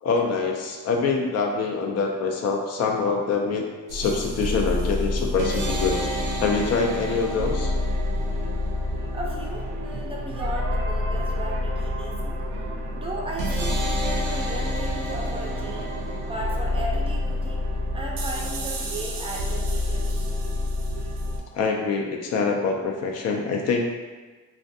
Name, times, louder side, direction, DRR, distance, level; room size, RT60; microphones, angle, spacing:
voice 1, 0.0-3.6 3.9-6.0 6.4-7.7 21.5-23.9, left 4 dB, 55° left, 1 dB, 0.4 m, -25 dB
sound 1, 3.9-21.4, left 1 dB, 80° right, 0.5 m, -27 dB
voice 2, 9.1-12.4 12.9-15.9 16.3-17.6 17.9-20.3, right 1 dB, 20° right, -2 dB, 0.4 m, -36 dB
2.5 x 2.2 x 2.6 m, 1.3 s
cardioid pair, 90°, 30 cm